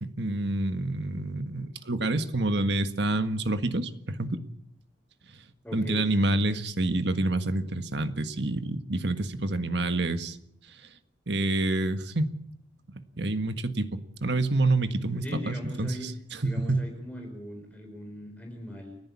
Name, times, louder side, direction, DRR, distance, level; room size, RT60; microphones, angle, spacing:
voice 1, 0.0-4.4 5.7-10.4 11.3-12.3 13.2-16.8, right 2 dB, 65° right, 9 dB, 1.6 m, -28 dB
voice 2, 5.6-6.1 15.1-16.1 16.4-19.0, left 1 dB, 10° left, 2 dB, 4.0 m, -40 dB
30.0 x 10.5 x 8.5 m, 0.71 s
head